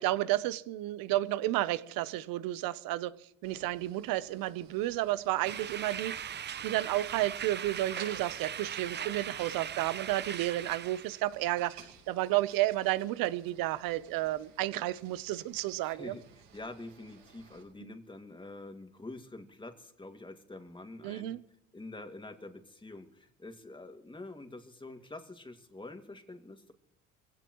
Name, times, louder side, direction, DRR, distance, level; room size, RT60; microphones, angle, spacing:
voice 1, 0.0-3.1 3.4-6.4 6.6-16.2 17.8-17.9 21.0-21.4, right 16 dB, 70° right, 0.9 m, -32 dB
sound 1, 3.4-17.6, right 7 dB, 85° right, 6.5 m, -56 dB
sound 2, 5.4-11.2, right 8 dB, 30° right, 0.6 m, -39 dB
voice 2, 15.8-21.4 21.7-26.7, left 2 dB, 15° left, 2.2 m, -46 dB
23.0 x 17.0 x 3.1 m
supercardioid pair, 85°, 36 cm